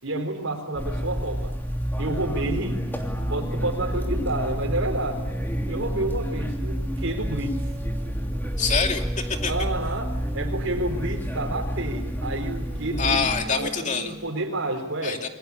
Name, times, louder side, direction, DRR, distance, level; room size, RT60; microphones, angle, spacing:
voice 1, 0.0-1.5 2.0-2.8 3.3-5.3 5.7-7.6 9.5-15.2, right 1 dB, 75° right, 0 dB, 4.3 m, -29 dB
sound 1, 0.7-13.4, equal, 10° left, 3.1 m, -29 dB
sound 2, 2.3-14.3, equal, 10° right, 1.6 m, -42 dB
voice 2, 8.6-9.5 13.0-14.1 15.0-15.3, left 5 dB, 35° left, 4 dB, 2.6 m, -25 dB
28.5 x 22.5 x 8.6 m, 1.1 s
head